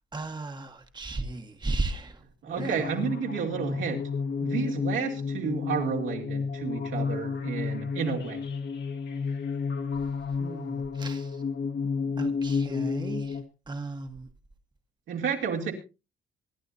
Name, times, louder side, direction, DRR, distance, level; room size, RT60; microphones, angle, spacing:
voice 1, 0.0-2.2 2.5-2.9 10.4-11.4 12.2-13.4 13.7-14.3, right 2 dB, 20° right, 6 dB, 1.4 m, -35 dB
voice 2, 2.4-4.0 4.4-8.4 15.1-15.7, right 6 dB, 80° right, 0 dB, 3.0 m, -31 dB
sound 1, 2.6-13.4, left 5 dB, 55° left, 1.8 m, -31 dB
25.0 x 10.5 x 2.7 m, 0.29 s
cardioid pair, 90°, 20 cm